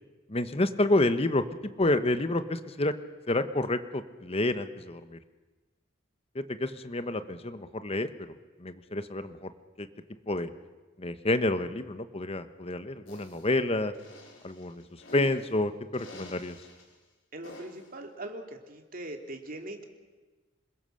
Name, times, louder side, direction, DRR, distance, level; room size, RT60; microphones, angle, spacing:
voice 1, 0.3-1.4 1.8-2.9 3.3-5.2 6.3-8.1 8.6-9.5 9.8-9.9 10.3-10.5 11.0-13.9 14.4-14.8 15.1-16.5, left 2 dB, 30° left, 11 dB, 1.1 m, -29 dB
sound 1, 13.1-13.5 13.9-15.5 15.9-16.8 17.4-17.9, left 1 dB, 75° left, 5.3 m, -47 dB
voice 2, 17.3-19.9, right 1 dB, 45° right, 4 dB, 2.6 m, -41 dB
27.0 x 21.0 x 6.5 m, 1.2 s
head